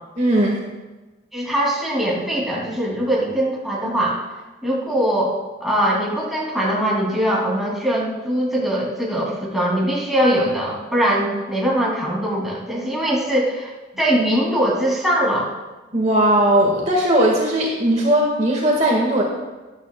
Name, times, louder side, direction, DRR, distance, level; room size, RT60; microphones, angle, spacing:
voice 1, 0.2-0.6 15.9-19.2, right 1 dB, 40° right, -2 dB, 1.5 m, -18 dB
voice 2, 1.3-4.2 4.6-5.3 5.6-15.5, right 1 dB, ahead, -5 dB, 2.4 m, -21 dB
13.0 x 11.0 x 2.2 m, 1.2 s
head